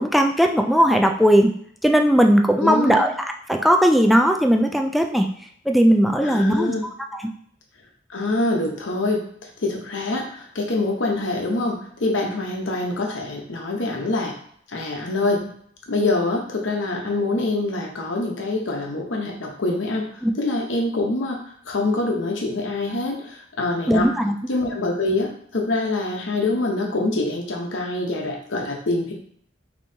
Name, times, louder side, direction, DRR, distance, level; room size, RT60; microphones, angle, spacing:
voice 1, 0.0-1.5 1.8-3.1 3.5-5.3 5.7-6.7 7.1-7.2 20.2-20.3 23.9-24.4, equal, ahead, 3 dB, 0.3 m, -17 dB
voice 2, 2.6-3.0 6.2-6.8 8.1-14.3 14.7-15.4 15.9-24.1 24.5-29.1, left 2 dB, 80° left, 1 dB, 0.9 m, -25 dB
5.2 x 3.0 x 2.7 m, 0.63 s
head